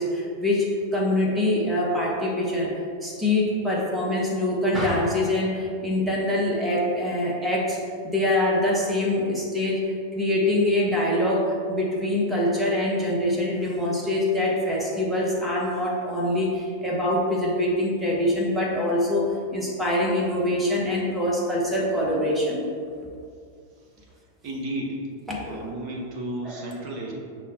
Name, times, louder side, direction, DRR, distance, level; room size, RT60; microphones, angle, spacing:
voice 1, 0.0-2.7 3.0-9.8 10.1-22.6 25.3-25.7 26.4-26.6, left 1 dB, 5° right, -3 dB, 0.9 m, -24 dB
voice 2, 24.4-25.0 25.4-27.1, right 1 dB, 35° right, -3 dB, 0.8 m, -33 dB
5.5 x 2.1 x 4.1 m, 2.3 s
figure-of-eight pair, 90°, 0 cm